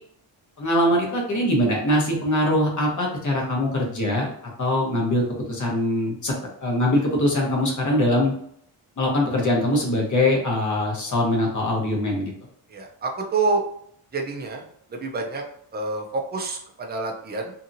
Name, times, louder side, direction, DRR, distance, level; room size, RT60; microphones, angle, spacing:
voice 1, 0.6-4.3 4.6-5.2 5.5-6.3 6.6-8.3 9.0-12.3, left 1 dB, 35° left, -2 dB, 1.0 m, -22 dB
voice 2, 12.7-13.6 14.1-14.6 14.9-15.4 15.7-17.5, right 3 dB, 20° right, 1 dB, 0.4 m, -27 dB
2.8 x 2.7 x 2.5 m, 0.67 s
wide cardioid pair, 155°, 50 cm